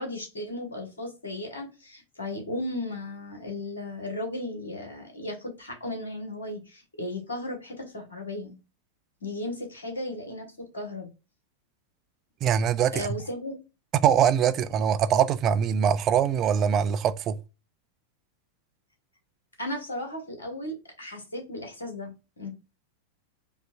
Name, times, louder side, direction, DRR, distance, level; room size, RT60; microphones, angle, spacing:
voice 1, 0.0-8.6 9.2-11.1 12.9-13.6 19.6-22.5, left 1 dB, 70° left, 1.2 m, -35 dB
voice 2, 12.4-13.2 14.0-17.4, right 8 dB, 30° right, 0.3 m, -23 dB
5.2 x 2.2 x 2.5 m
figure-of-eight pair, 90°, 0 cm